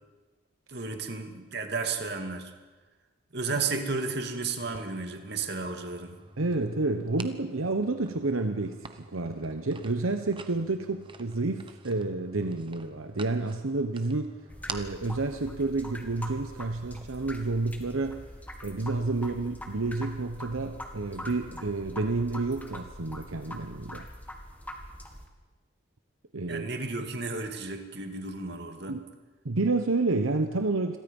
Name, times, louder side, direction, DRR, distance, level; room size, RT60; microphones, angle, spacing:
voice 1, 0.7-2.5 3.3-6.2 26.5-29.0, right 4 dB, 50° right, 5 dB, 2.4 m, -33 dB
sound 1, 4.6-17.1, right 4 dB, 25° right, 1.1 m, -48 dB
voice 2, 6.4-14.4 14.7-18.2 18.6-24.1 26.3-26.7 28.9-29.0 29.4-31.0, right 3 dB, 85° right, 7 dB, 1.0 m, -30 dB
sound 2, 14.5-25.3, equal, 10° left, 2.0 m, -43 dB
28.5 x 22.0 x 5.4 m, 1.2 s
head